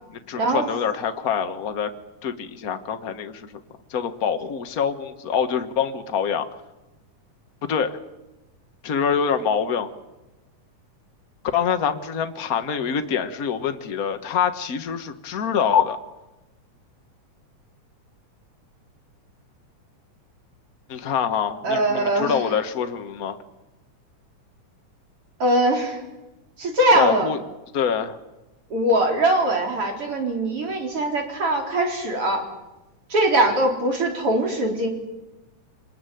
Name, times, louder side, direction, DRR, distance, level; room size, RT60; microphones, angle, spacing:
voice 1, 0.3-1.9 2.2-3.5 3.9-6.5 7.7-8.0 8.8-9.9 11.5-16.0 20.9-23.4 26.9-27.4 27.7-28.2, left 7 dB, 70° left, 7 dB, 0.8 m, -25 dB
voice 2, 21.6-22.4 25.4-26.0 26.6-27.3 28.7-32.4 33.1-34.9, right 1 dB, 45° right, 1 dB, 4.9 m, -21 dB
25.5 x 20.5 x 9.3 m, 1.1 s
omnidirectional pair, 3.7 m